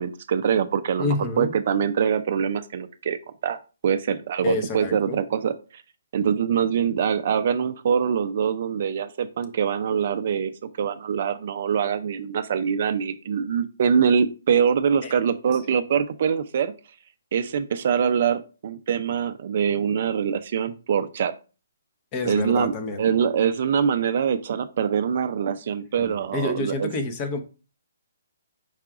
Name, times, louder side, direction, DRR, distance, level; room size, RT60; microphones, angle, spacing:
voice 1, 0.0-3.2 3.4-3.6 3.8-5.8 6.1-16.7 17.3-21.3 22.2-22.7 23.0-26.9, right 7 dB, 50° right, 11 dB, 0.3 m, -24 dB
voice 2, 1.0-1.5 4.4-5.2 15.0-15.2 22.1-23.0 26.0-27.4, left 2 dB, 25° left, 7 dB, 0.7 m, -28 dB
4.8 x 2.3 x 4.7 m, 0.33 s
hypercardioid pair, 150°, 0 cm